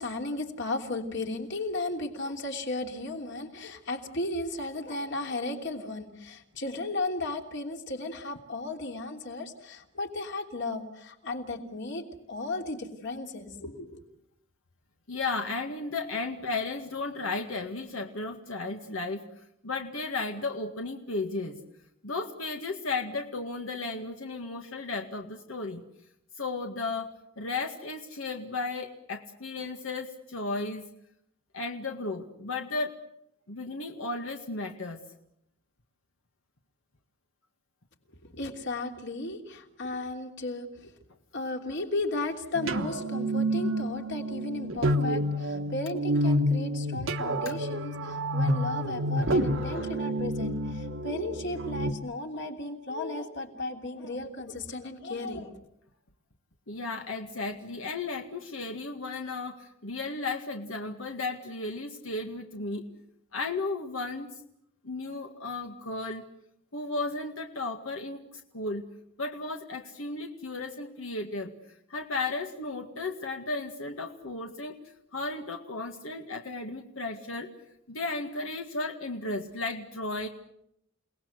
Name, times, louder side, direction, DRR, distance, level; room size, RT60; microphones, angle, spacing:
voice 1, 0.0-14.0 38.3-40.9 41.3-55.6, left 2 dB, 60° left, 4 dB, 3.1 m, -35 dB
voice 2, 15.1-19.3 19.6-21.6 22.0-25.8 26.4-27.1 27.4-30.9 31.5-32.9 33.5-35.0 47.5-47.6 49.6-50.0 56.7-62.9 63.3-64.4 64.8-66.2 66.7-68.8 69.2-71.5 71.9-74.7 75.1-77.5 77.9-80.3, left 3 dB, 85° left, 4 dB, 2.0 m, -34 dB
sound 1, 42.5-51.9, equal, 70° right, 1.3 m, -29 dB
29.5 x 19.0 x 8.1 m, 0.77 s
head